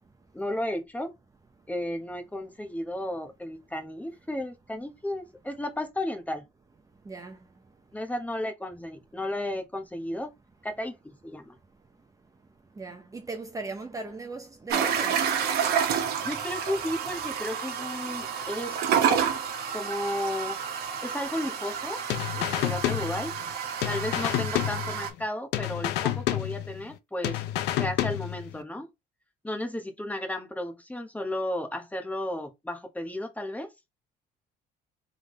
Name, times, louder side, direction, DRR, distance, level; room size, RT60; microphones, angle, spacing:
voice 1, 0.3-1.1 1.7-6.4 7.9-10.3 10.6-11.5 16.2-18.8 19.1-19.3 19.7-20.6 21.0-22.0 22.3-23.3 23.9-27.4 27.7-28.9 29.4-33.7, left 1 dB, 10° left, 1.1 m, -33 dB
voice 2, 6.8-8.0 11.5-16.1, right 3 dB, 20° right, 0.7 m, -41 dB
sound 1, 14.7-25.1, right 7 dB, 70° right, 1.3 m, -29 dB
sound 2, 22.1-23.5 23.8-25.3 25.5-27.0 27.2-28.6, left 13 dB, 90° left, 0.6 m, -29 dB
3.6 x 3.5 x 3.1 m
cardioid pair, 110°, 17 cm